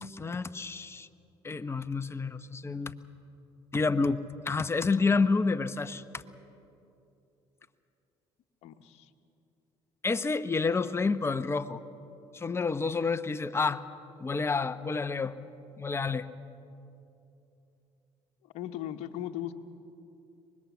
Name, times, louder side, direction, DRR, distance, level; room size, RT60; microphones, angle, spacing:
voice 1, 0.0-1.1 1.4-2.9 3.7-6.2 10.0-11.8 12.3-13.8 14.2-15.3 15.8-16.3, left 4 dB, 25° left, 10 dB, 0.9 m, -29 dB
voice 2, 8.6-9.1 18.4-19.5, left 12 dB, 75° left, 7 dB, 1.1 m, -38 dB
24.0 x 21.0 x 7.2 m, 2.8 s
supercardioid pair, 80°, 11 cm